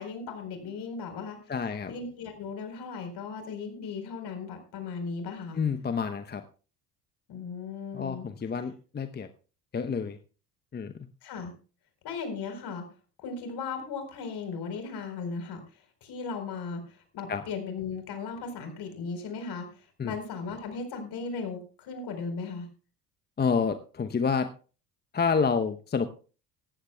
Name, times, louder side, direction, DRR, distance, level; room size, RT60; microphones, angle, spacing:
voice 1, 0.0-1.4 1.9-5.6 7.3-8.3 11.2-11.5 12.0-12.8 13.2-22.7, left 5 dB, 55° left, 6 dB, 4.3 m, -37 dB
voice 2, 1.5-1.9 5.5-6.4 7.9-9.3 9.7-10.2 10.7-11.0 17.3-17.4 20.0-20.1 23.4-24.5 25.1-26.1, left 5 dB, 20° left, 10 dB, 0.8 m, -28 dB
17.5 x 14.5 x 2.3 m, 0.36 s
hypercardioid pair, 60°, 47 cm